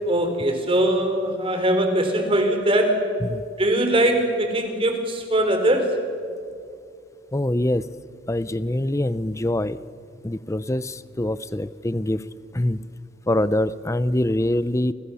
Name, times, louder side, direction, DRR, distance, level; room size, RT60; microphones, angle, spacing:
voice 1, 0.0-3.1 3.6-6.0, right 1 dB, 30° right, 6 dB, 3.8 m, -21 dB
voice 2, 7.3-7.9 8.3-9.8 10.2-12.2 12.5-12.8 13.3-14.9, left 1 dB, 15° left, 16 dB, 0.7 m, -24 dB
29.0 x 28.0 x 7.1 m, 2.3 s
head